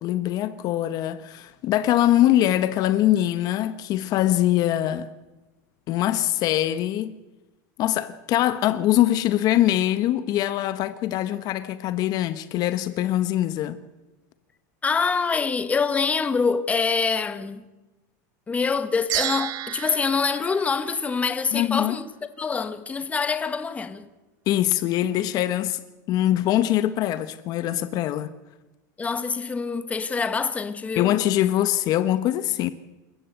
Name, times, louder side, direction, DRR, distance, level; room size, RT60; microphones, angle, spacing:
voice 1, 0.0-5.1 5.9-7.1 7.8-13.8 21.5-22.0 24.5-25.8 26.1-28.3 31.0-32.7, left 13 dB, 40° left, 1.0 m, -23 dB
voice 2, 14.8-17.7 18.5-22.0 22.4-24.1 29.0-31.1, left 5 dB, 15° left, 1.2 m, -25 dB
sound 1, 19.1-21.6, right 13 dB, 45° right, 1.8 m, -32 dB
27.0 x 14.0 x 8.2 m
supercardioid pair, 140°, 10 cm